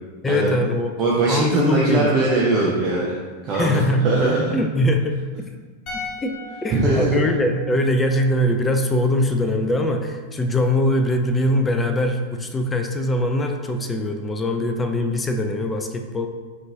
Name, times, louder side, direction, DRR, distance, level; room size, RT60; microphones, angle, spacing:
voice 1, 0.2-0.9 1.3-2.1 3.5-4.1 4.5-5.2 5.9-6.4 6.6-16.3, left 1 dB, 15° left, 6 dB, 0.4 m, -22 dB
voice 2, 0.9-3.1 3.4-4.5 6.7-7.2, right 2 dB, 30° right, -5 dB, 0.6 m, -21 dB
sound 1, 5.9-9.1 9.3-9.5, left 3 dB, 40° left, 0.9 m, -38 dB
5.2 x 2.9 x 2.7 m, 1.4 s
figure-of-eight pair, 90°, 0 cm